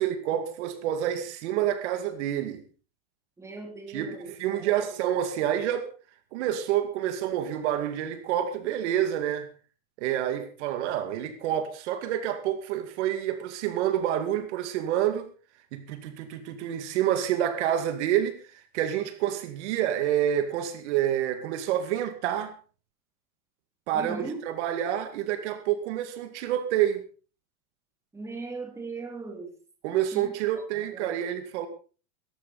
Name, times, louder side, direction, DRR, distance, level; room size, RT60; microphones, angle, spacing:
voice 1, 0.0-2.6 3.9-5.9 6.3-9.5 10.0-15.3 15.7-22.5 23.9-27.0 29.8-31.7, right 11 dB, 60° right, 2.3 m, -28 dB
voice 2, 3.4-4.9 23.9-24.4 28.1-29.5 30.1-30.3 30.9-31.2, right 3 dB, 5° right, 2.9 m, -39 dB
17.5 x 14.0 x 4.2 m
supercardioid pair, 170°, 40 cm